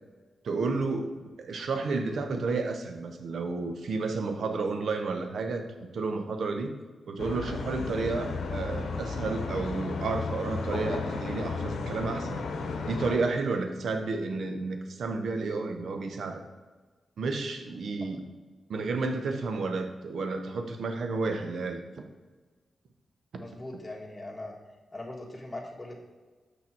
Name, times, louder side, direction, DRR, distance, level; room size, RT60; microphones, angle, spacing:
voice 1, 0.4-5.6 5.9-6.7 7.1-12.4 12.9-16.4 17.2-18.2 18.7-21.8 23.3-23.4, right 3 dB, 75° right, 6 dB, 0.8 m, -31 dB
sound 1, 7.2-13.2, left 4 dB, 85° left, 0.8 m, -34 dB
voice 2, 23.4-24.5 24.9-26.0, left 2 dB, 20° left, -2 dB, 1.8 m, -40 dB
6.0 x 6.0 x 4.5 m, 1.3 s
cardioid pair, 50°, 0 cm